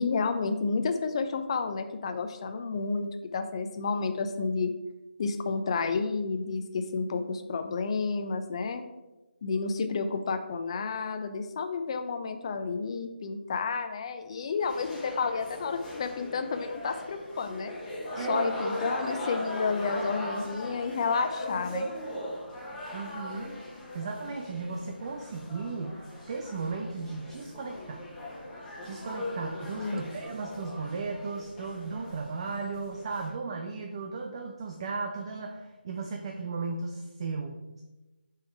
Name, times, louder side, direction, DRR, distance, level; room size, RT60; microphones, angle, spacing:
voice 1, 0.0-4.7 5.2-8.8 9.4-17.7 18.2-21.9 29.8-30.0, left 4 dB, 30° left, 8 dB, 0.5 m, -31 dB
sound 1, 14.6-33.3, left 1 dB, 10° left, 1.5 m, -39 dB
voice 2, 18.2-18.5 22.9-23.6 23.9-28.1 28.8-37.8, right 4 dB, 30° right, 3 dB, 0.5 m, -35 dB
6.5 x 4.6 x 4.7 m, 1.1 s
figure-of-eight pair, 160°, 6 cm